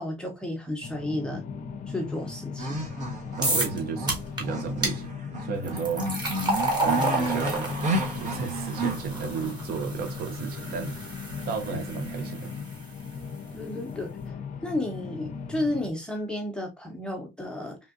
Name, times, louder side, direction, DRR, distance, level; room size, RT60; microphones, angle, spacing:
voice 1, 0.0-1.4 1.9-2.9 13.5-14.1 14.6-17.8, left 1 dB, 5° left, 0.8 m, -32 dB
sound 1, 0.8-15.9, left 5 dB, 50° left, 0.6 m, -38 dB
sound 2, 2.6-9.0, right 1 dB, 45° right, 1.1 m, -31 dB
sound 3, 3.4-3.8 4.1-4.4 4.8-5.0 5.6-12.8, right 2 dB, 25° right, 1.3 m, -31 dB
voice 2, 3.4-5.1 5.4-6.1 6.7-7.7 8.1-11.0 11.5-12.5, right 6 dB, 65° right, 0.7 m, -33 dB
3.5 x 2.5 x 2.4 m
cardioid pair, 110°, 17 cm